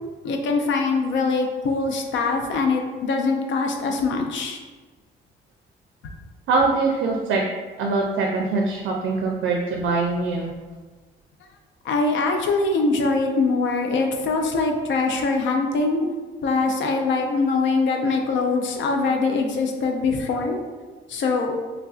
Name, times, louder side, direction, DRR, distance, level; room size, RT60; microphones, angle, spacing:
voice 1, 0.2-4.6 6.0-6.1 11.8-16.0 16.4-20.6 21.1-21.5, left 3 dB, 70° left, 3 dB, 0.5 m, -23 dB
voice 2, 6.5-7.4 7.8-10.5 18.9-19.1, right 3 dB, 80° right, 0 dB, 0.4 m, -23 dB
3.3 x 2.4 x 2.4 m, 1.4 s
cardioid pair, 90°, 20 cm